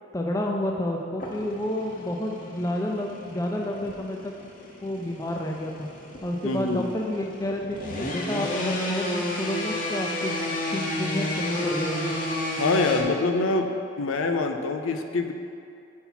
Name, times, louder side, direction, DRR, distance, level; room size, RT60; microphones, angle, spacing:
voice 1, 0.1-4.3 4.8-5.9 6.2-12.1, left 1 dB, 15° left, 1 dB, 0.4 m, -30 dB
sound 1, 1.2-13.0, left 1 dB, 40° left, 0.8 m, -32 dB
voice 2, 6.4-6.8 12.6-13.7 14.0-15.3, left 3 dB, 85° left, 6 dB, 0.5 m, -25 dB
7.0 x 4.4 x 5.7 m, 2.4 s
head